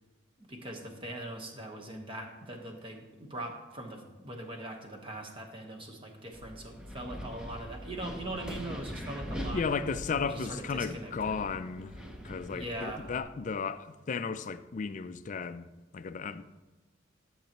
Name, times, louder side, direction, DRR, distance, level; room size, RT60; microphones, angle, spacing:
voice 1, 0.4-9.6 10.2-11.4 12.5-13.1, right 1 dB, 25° right, 1.1 m, -41 dB
Wind, 6.3-13.2, equal, 5° right, 0.6 m, -42 dB
voice 2, 9.5-12.0 12.2-16.4, left 5 dB, 40° left, 0.3 m, -34 dB
12.0 x 7.2 x 2.9 m
head